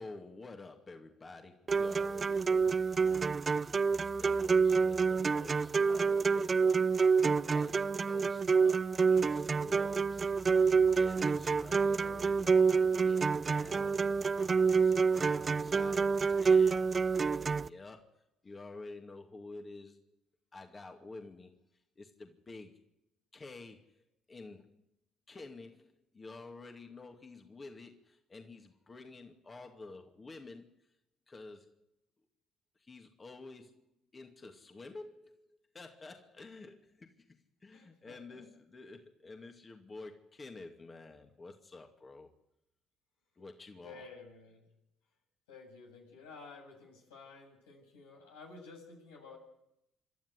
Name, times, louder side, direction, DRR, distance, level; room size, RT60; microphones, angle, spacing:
voice 1, 0.0-6.8 7.2-17.0 17.3-18.2 18.4-20.0 20.5-21.6 22.0-22.8 23.3-23.9 24.3-24.8 25.3-30.7 31.3-31.7 32.8-33.8 34.1-35.4 35.7-37.1 37.6-42.3 43.4-44.1, left 3 dB, 30° left, 4 dB, 2.4 m, -50 dB
sound 1, 1.7-17.7, right 5 dB, 35° right, 0.8 m, -28 dB
voice 2, 37.7-38.4 43.8-44.6 45.5-49.4, left 4 dB, 90° left, -1 dB, 7.8 m, -52 dB
27.5 x 12.5 x 9.8 m, 0.84 s
hypercardioid pair, 60°, 0 cm